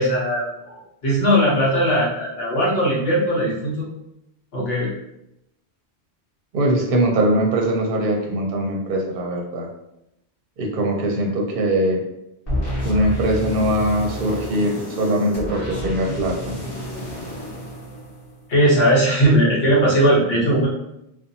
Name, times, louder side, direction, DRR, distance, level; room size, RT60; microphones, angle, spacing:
voice 1, 0.0-3.9 4.5-4.9 18.5-20.7, equal, 65° left, -5 dB, 1.1 m, -19 dB
voice 2, 6.5-9.7 10.6-12.0 12.8-16.6, right 1 dB, 60° right, 0 dB, 0.7 m, -21 dB
sound 1, 12.5-18.6, left 1 dB, 35° left, 1.0 m, -30 dB
2.6 x 2.3 x 2.6 m, 0.83 s
omnidirectional pair, 1.1 m